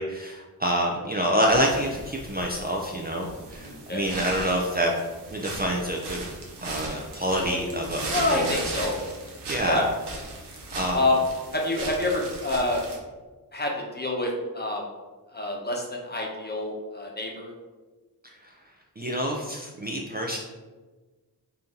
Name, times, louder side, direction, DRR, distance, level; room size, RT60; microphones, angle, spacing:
voice 1, 0.0-4.9 5.3-6.3 6.6-8.4 9.5-9.8 10.7-11.0 19.0-20.4, equal, 25° right, -1 dB, 0.5 m, -27 dB
sound 1, 1.5-13.0, right 2 dB, 85° right, 0.9 m, -37 dB
voice 2, 8.1-8.9 9.6-9.9 10.9-11.2 11.5-12.8 13.5-14.3 14.5-14.8 15.3-17.5, left 2 dB, 25° left, -1 dB, 0.9 m, -27 dB
4.3 x 2.7 x 3.7 m, 1.3 s
wide cardioid pair, 65°, 39 cm